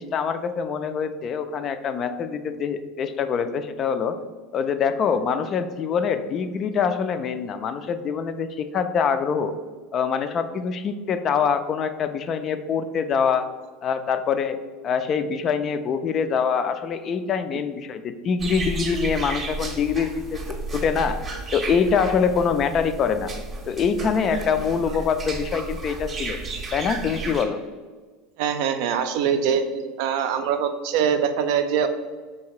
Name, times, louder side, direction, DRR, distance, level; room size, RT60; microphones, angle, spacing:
voice 1, 0.0-4.2 4.5-9.5 9.9-13.5 13.8-14.6 14.8-21.2 21.5-23.3 23.7-26.4 26.7-27.6, left 6 dB, 40° left, 10 dB, 0.3 m, -24 dB
sound 1, 18.4-27.4, right 3 dB, 30° right, 0.7 m, -33 dB
voice 2, 28.4-29.6 30.0-31.9, right 8 dB, 70° right, 8 dB, 0.4 m, -23 dB
3.2 x 2.8 x 4.6 m, 1.4 s
supercardioid pair, 100°, 0 cm